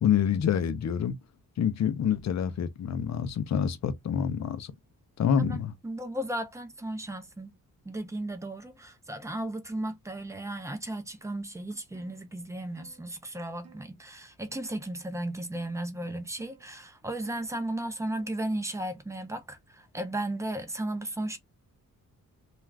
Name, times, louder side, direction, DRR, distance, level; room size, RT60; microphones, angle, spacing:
voice 1, 0.0-1.2 1.6-4.7 5.2-5.7, left 8 dB, 50° left, 0.5 m, -27 dB
voice 2, 5.4-7.6 7.9-21.4, right 1 dB, 10° right, 0.4 m, -35 dB
sound 1, 11.9-12.2 12.8-13.0 13.6-13.9 14.6-14.9 15.5-15.8 16.4-16.6 17.2-17.5 18.1-18.4, right 6 dB, 45° right, 0.8 m, -55 dB
2.4 x 2.3 x 3.2 m
wide cardioid pair, 155°, 35 cm